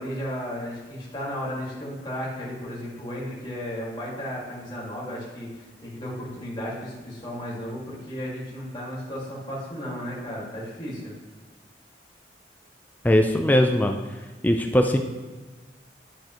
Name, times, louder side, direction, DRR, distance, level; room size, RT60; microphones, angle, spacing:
voice 1, 0.0-11.2, equal, 25° left, -6 dB, 2.0 m, -34 dB
voice 2, 13.0-14.0 14.4-15.0, left 1 dB, 10° left, 4 dB, 0.4 m, -20 dB
10.0 x 6.4 x 3.1 m, 1.3 s
head